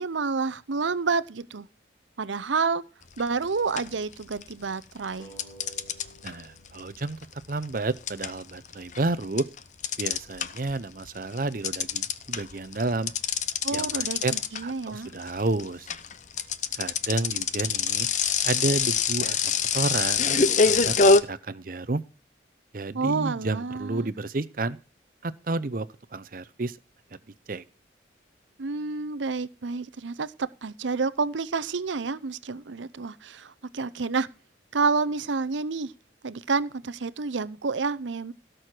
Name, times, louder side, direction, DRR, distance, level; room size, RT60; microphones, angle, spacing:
voice 1, 0.0-1.7 2.2-2.8 3.2-5.3 13.6-15.1 22.9-24.1 28.6-34.3 34.7-35.9 36.2-38.3, right 4 dB, 80° right, 17 dB, 0.7 m, -29 dB
sound 1, 3.2-3.4 3.8-4.7 5.4-10.8 11.1-21.2, left 5 dB, 40° left, 0.7 m, -25 dB
sound 2, 5.2-8.4, right 2 dB, 20° left, 3.8 m, -53 dB
voice 2, 6.2-9.5 10.0-13.1 13.7-14.3 14.6-15.9 16.8-18.1 18.4-20.9 21.2-22.0 22.7-24.8 25.2-25.9 26.1-26.8 27.5-27.6, right 2 dB, 45° right, 15 dB, 0.7 m, -31 dB
17.5 x 6.4 x 4.5 m, 0.36 s
head